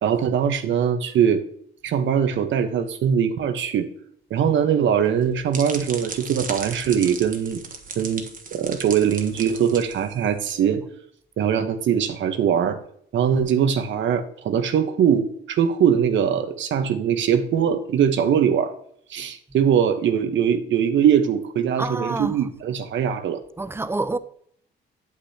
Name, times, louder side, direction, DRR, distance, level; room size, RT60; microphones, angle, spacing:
voice 1, 0.0-1.4 1.8-3.9 4.3-7.6 8.0-8.2 8.5-10.8 11.4-12.8 13.1-18.7 19.1-23.4, right 8 dB, 70° right, 1.1 m, -21 dB
sound 1, 5.0-10.4, right 5 dB, 45° right, 1.3 m, -36 dB
voice 2, 21.8-22.4 23.6-24.2, right 2 dB, 10° right, 0.6 m, -27 dB
8.5 x 8.4 x 2.9 m
cardioid pair, 90°, 20 cm